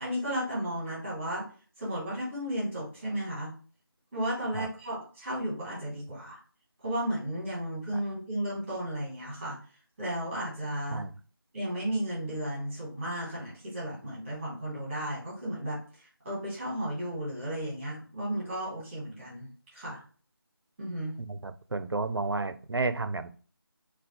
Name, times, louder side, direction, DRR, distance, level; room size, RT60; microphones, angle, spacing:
voice 1, 0.0-1.4 1.8-3.5 4.1-6.4 6.8-9.6 10.0-11.1 11.5-20.0 20.8-21.2, right 1 dB, 10° right, -6 dB, 1.0 m, -34 dB
voice 2, 21.2-23.3, right 3 dB, 85° right, 11 dB, 0.4 m, -32 dB
2.4 x 2.3 x 3.5 m, 0.40 s
figure-of-eight pair, 165°, 12 cm